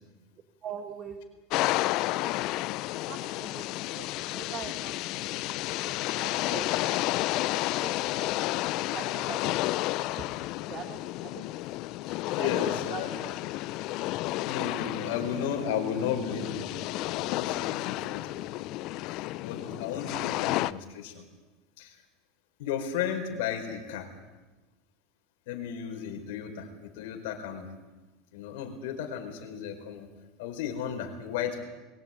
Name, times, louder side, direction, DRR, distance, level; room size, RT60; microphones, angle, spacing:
voice 1, 0.6-1.2 3.1-6.7 7.5-7.9 8.2-9.5 9.8-9.9 10.2-10.3 10.7-11.6 12.3-12.5 12.9-13.0, right 8 dB, 40° right, 7 dB, 1.8 m, -43 dB
sound 1, 1.5-20.7, left 18 dB, 55° left, 0.6 m, -31 dB
voice 2, 12.3-13.1 14.4-18.8 19.1-21.2 21.8-22.0 22.6-24.1 25.5-27.7 28.3-30.1 30.4-31.6, left 8 dB, 80° left, 4 dB, 4.6 m, -34 dB
22.0 x 17.0 x 9.1 m, 1.2 s
supercardioid pair, 120°, 0 cm